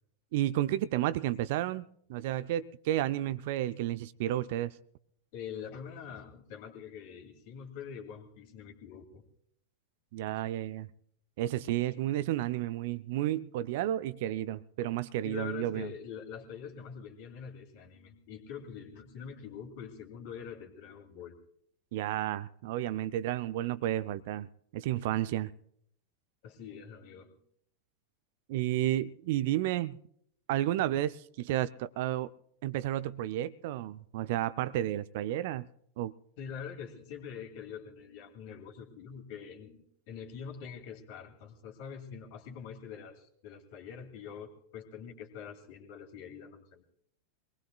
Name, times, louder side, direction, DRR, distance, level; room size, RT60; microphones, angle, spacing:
voice 1, 0.3-4.7 10.1-10.9 11.4-15.9 21.9-25.5 28.5-30.0 30.5-32.3 32.6-35.7 36.0-36.1, right 13 dB, 50° right, 0.5 m, -32 dB
voice 2, 5.3-9.2 15.2-21.4 26.4-27.4 30.6-30.7 36.4-46.9, left 7 dB, 45° left, 2.5 m, -45 dB
24.5 x 19.5 x 2.3 m
figure-of-eight pair, 90°, 0 cm